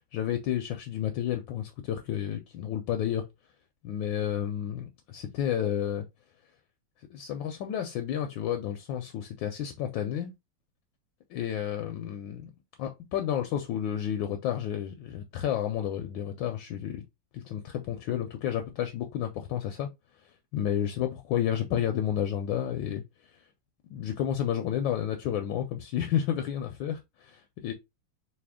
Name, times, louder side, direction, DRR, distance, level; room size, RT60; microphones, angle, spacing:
voice 1, 0.1-3.3 3.8-6.1 7.1-10.3 11.3-12.5 12.8-17.0 17.3-19.9 20.2-23.4 23.9-27.7, left 10 dB, 75° left, 1.2 m, -31 dB
4.2 x 2.7 x 3.5 m
omnidirectional pair, 2.3 m